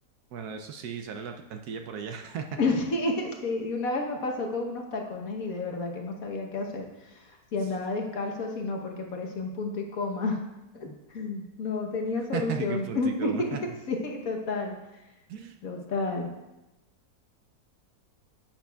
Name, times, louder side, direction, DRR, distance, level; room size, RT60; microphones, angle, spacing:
voice 1, 0.3-2.6 8.2-8.3 12.3-13.6 15.3-15.6, right 6 dB, 70° right, 5 dB, 1.0 m, -36 dB
voice 2, 2.6-10.4 10.7-13.6 13.9-14.8 15.6-16.3, left 3 dB, 55° left, 2 dB, 1.3 m, -31 dB
10.0 x 8.6 x 2.3 m, 0.99 s
omnidirectional pair, 1.9 m